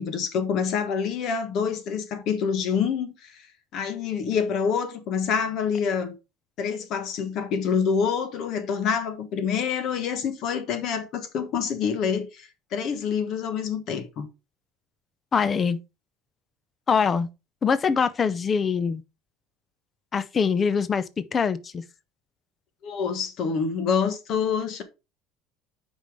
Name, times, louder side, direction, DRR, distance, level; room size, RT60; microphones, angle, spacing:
voice 1, 0.0-3.5 3.7-6.1 6.6-14.3 22.8-24.8, left 6 dB, 45° left, 1.3 m, -27 dB
voice 2, 15.3-15.8 16.9-17.3 17.6-19.0 20.1-21.0 21.3-21.8, left 6 dB, 20° left, 0.5 m, -23 dB
8.4 x 5.3 x 3.6 m
cardioid pair, 165°, 0 cm